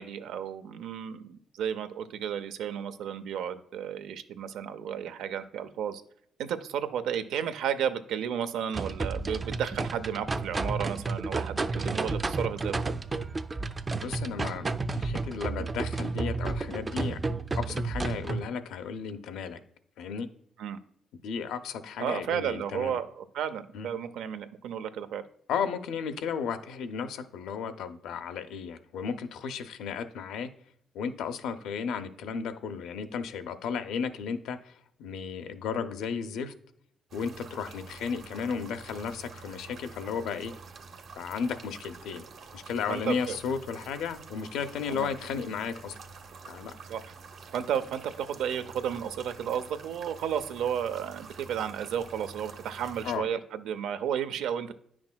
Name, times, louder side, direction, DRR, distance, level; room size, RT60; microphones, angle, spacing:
voice 1, 0.0-6.0 6.4-12.9 20.6-20.8 22.0-25.2 42.9-43.4 44.9-45.1 46.9-47.1 47.5-54.7, right 8 dB, 85° right, 11 dB, 0.5 m, -33 dB
sound 1, 8.7-18.5, right 3 dB, 25° right, 0.4 m, -31 dB
voice 2, 14.0-17.2 17.6-19.6 20.0-20.3 21.2-23.0 23.7-23.9 25.5-30.5 30.9-34.7 35.0-36.5 37.1-40.5 41.2-42.2 42.5-46.0 46.5-46.7 53.0-53.3, left 6 dB, 85° left, 9 dB, 0.5 m, -34 dB
sound 2, 37.1-53.2, right 4 dB, 65° right, 0.9 m, -48 dB
9.5 x 5.9 x 2.2 m, 0.67 s
cardioid pair, 90°, 0 cm